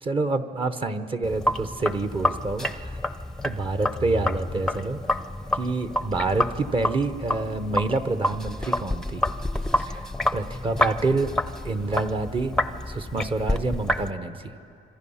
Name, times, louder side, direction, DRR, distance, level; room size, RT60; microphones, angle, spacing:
voice 1, 0.0-3.0 3.4-5.0 5.5-9.2 9.8-11.3 11.6-12.5 12.9-14.5, right 3 dB, 30° right, 10 dB, 1.0 m, -27 dB
Sink (filling or washing), 1.2-14.1, left 1 dB, 5° left, 0.7 m, -28 dB
26.0 x 25.5 x 5.7 m, 2.9 s
cardioid pair, 110°, 17 cm